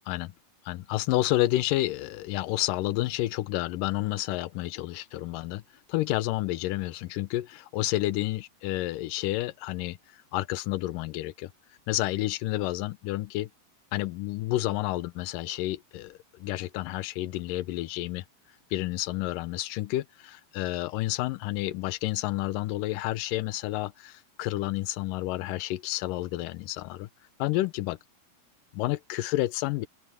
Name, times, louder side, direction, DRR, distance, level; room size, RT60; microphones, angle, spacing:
voice 1, 0.7-5.6 5.9-10.0 10.3-11.5 11.9-13.5 13.9-18.2 18.7-27.1 27.4-28.0 28.7-29.9, left 16 dB, 80° left, 2.2 m, -30 dB
open air
omnidirectional pair, 4.3 m